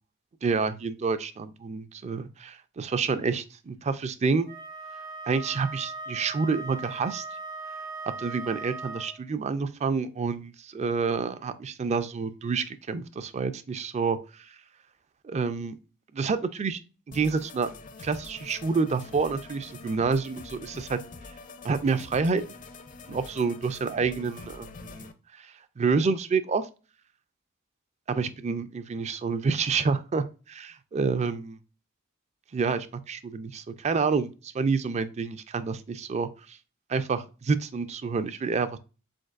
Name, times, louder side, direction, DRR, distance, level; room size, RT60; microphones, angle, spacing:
voice 1, 0.4-4.5 5.3-7.2 8.2-14.2 15.2-15.8 16.1-16.8 17.1-17.7 18.0-21.0 21.6-22.5 23.1-25.1 25.4-25.5 25.8-26.7 28.1-31.6 32.5-36.6 36.9-38.8, right 4 dB, 30° right, 0.4 m, -28 dB
Wind instrument woodwind instrument, 4.5-9.2, right 3 dB, 65° right, 1.3 m, -39 dB
sound 1, 17.1-25.1, left 3 dB, 40° left, 0.5 m, -45 dB
5.1 x 3.9 x 2.4 m
head